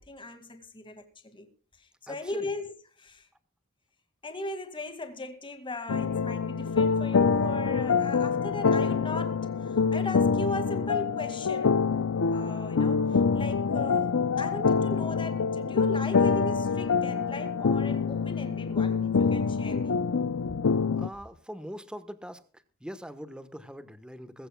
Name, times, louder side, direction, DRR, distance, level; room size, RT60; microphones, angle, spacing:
voice 1, 0.0-1.5 1.8-3.3 4.2-11.8 12.3-20.0, left 2 dB, 25° left, 2.1 m, -38 dB
voice 2, 2.1-2.5 21.0-22.4 22.8-24.5, equal, 5° right, 1.2 m, -42 dB
sound 1, 5.9-21.1, left 5 dB, 70° left, 0.6 m, -26 dB
21.0 x 15.5 x 2.3 m
head